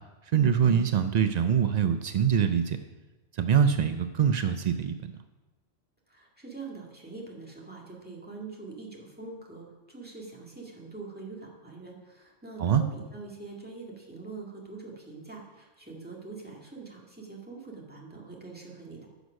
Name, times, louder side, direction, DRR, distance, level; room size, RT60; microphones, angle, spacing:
voice 1, 0.3-2.8 3.3-5.0 12.6-12.8, right 8 dB, 75° right, 9 dB, 0.4 m, -24 dB
voice 2, 6.1-19.1, right 4 dB, 10° right, -3 dB, 1.9 m, -44 dB
10.0 x 6.3 x 6.3 m, 1.2 s
omnidirectional pair, 1.3 m